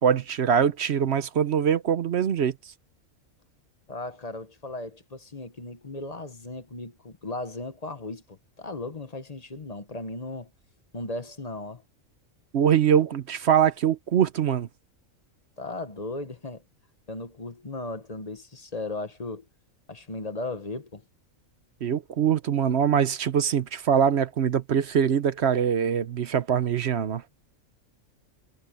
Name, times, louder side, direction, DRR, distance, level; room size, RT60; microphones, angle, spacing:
voice 1, 0.0-2.5 12.5-14.7 21.8-27.2, right 8 dB, 60° right, 1.0 m, -23 dB
voice 2, 3.9-10.5 10.9-11.8 15.6-16.6 17.1-19.4 19.9-21.0, left 2 dB, 30° left, 1.2 m, -36 dB
omnidirectional pair, 1.4 m